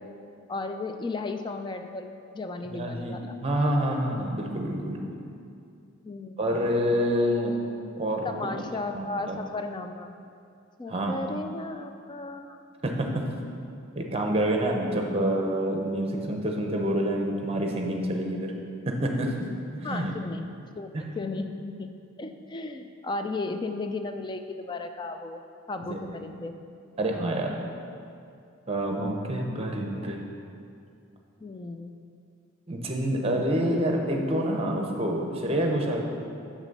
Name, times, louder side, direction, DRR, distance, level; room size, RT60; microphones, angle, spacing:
voice 1, 0.5-3.4 6.0-6.7 8.2-10.2 10.8-12.6 19.8-20.5 20.7-21.9 22.2-25.4 25.7-26.6 31.4-31.9, left 3 dB, 20° left, 6 dB, 0.3 m, -35 dB
voice 2, 2.7-5.0 6.4-7.6 7.9-8.3 8.9-9.4 10.9-11.1 12.8-13.2 14.0-18.5 18.9-19.5 19.7-20.1 20.9-21.0 25.9-26.0 27.0-27.6 28.7-30.2 32.7-36.0, right 1 dB, 30° right, 2 dB, 0.8 m, -27 dB
6.6 x 6.0 x 5.3 m, 2.5 s
head